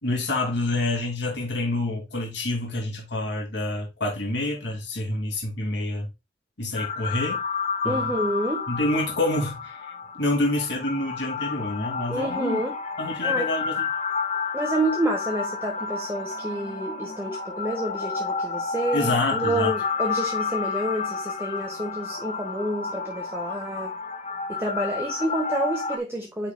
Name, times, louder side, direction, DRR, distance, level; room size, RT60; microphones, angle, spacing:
voice 1, 0.0-6.1 6.6-7.4 7.8-8.2 8.7-9.9 10.2-12.6 13.0-13.9 18.9-19.7, left 2 dB, 65° left, 2.9 m, -27 dB
sound 1, 6.7-26.0, left 5 dB, 40° left, 1.0 m, -30 dB
voice 2, 7.8-8.6 12.1-12.8 13.2-13.5 14.5-23.9 24.5-26.5, right 1 dB, 15° right, 1.3 m, -29 dB
10.0 x 4.8 x 2.3 m
head